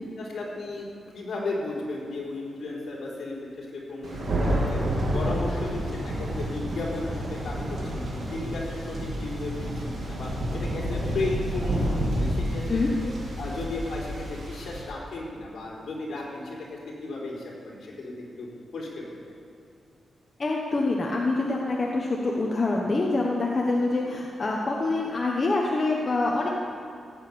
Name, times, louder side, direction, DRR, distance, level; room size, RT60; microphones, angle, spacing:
voice 1, 0.2-4.8 5.1-8.0 8.3-13.1 13.4-16.6 17.0-18.5 18.7-19.4, left 2 dB, 65° left, -4 dB, 4.2 m, -35 dB
Thunder, 4.0-14.8, equal, 55° right, 3.4 m, -29 dB
voice 2, 20.4-26.5, left 2 dB, 30° left, -2 dB, 1.3 m, -25 dB
16.5 x 8.9 x 7.0 m, 2.6 s
wide cardioid pair, 140°, 0 cm